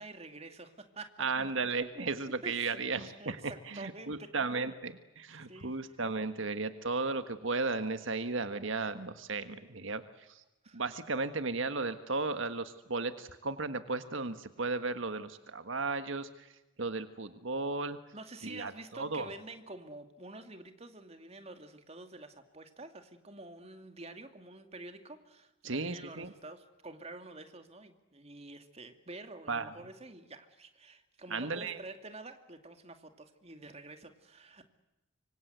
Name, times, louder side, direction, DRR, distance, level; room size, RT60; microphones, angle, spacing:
voice 1, 0.0-1.3 1.9-2.1 2.4-4.6 5.5-6.0 10.6-10.8 18.1-34.8, right 2 dB, 30° right, 7 dB, 2.4 m, -48 dB
voice 2, 1.2-10.4 10.7-16.5 16.8-18.0 18.4-19.3 25.6-26.3 29.5-29.7 31.3-31.8, right 3 dB, 75° right, 10 dB, 1.5 m, -35 dB
26.0 x 25.0 x 8.0 m, 0.96 s
head